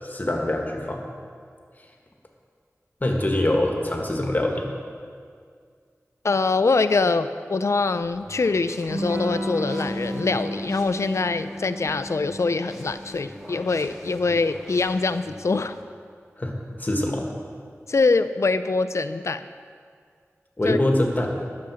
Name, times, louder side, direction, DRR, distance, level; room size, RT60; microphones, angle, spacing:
voice 1, 0.0-1.0 3.0-4.7 16.4-16.5 16.8-17.3 20.6-21.3, left 1 dB, 35° left, 1 dB, 1.5 m, -24 dB
voice 2, 6.2-15.8 17.9-19.4 20.7-20.8, left 3 dB, 70° left, 11 dB, 0.4 m, -24 dB
sound 1, 7.8-15.8, equal, ahead, 1.9 m, -45 dB
Electric guitar / Strum, 8.9-14.3, equal, 70° right, 1.6 m, -33 dB
11.5 x 7.0 x 6.2 m, 2.1 s
wide cardioid pair, 60°, 5 cm